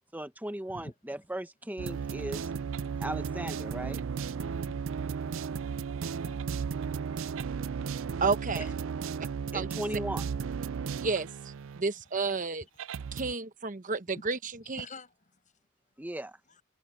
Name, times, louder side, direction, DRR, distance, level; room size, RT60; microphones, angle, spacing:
voice 1, 0.1-2.5 3.0-4.0 9.5-10.3 16.0-16.4, right 1 dB, 10° right, 1.0 m, -37 dB
sound 1, 1.8-11.8 12.3-12.4 12.8-13.3, right 6 dB, 65° right, 0.4 m, -35 dB
voice 2, 6.2-6.9 8.6-8.7 9.1-9.3 12.6-12.8 14.1-14.3 14.5-15.5 16.5-16.6, left 2 dB, 35° left, 6.3 m, -49 dB
voice 3, 8.2-8.7 9.5-9.8 11.0-12.6 13.1-14.4 14.7-14.8, right 4 dB, 40° right, 1.0 m, -31 dB
head